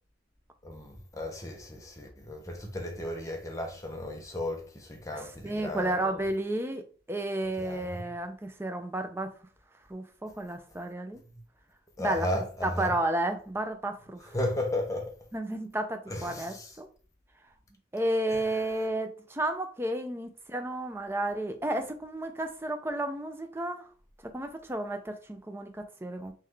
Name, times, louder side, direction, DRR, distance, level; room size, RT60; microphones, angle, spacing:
voice 1, 0.6-6.2 7.6-8.1 11.2-11.4 12.0-12.9 14.3-15.1 16.1-16.7 18.3-18.4, left 1 dB, 15° left, 0.8 m, -35 dB
voice 2, 5.1-9.3 9.9-11.2 12.0-14.3 15.3-16.9 17.9-23.9 24.3-26.3, right 1 dB, 10° right, 0.5 m, -32 dB
3.8 x 3.2 x 3.2 m
head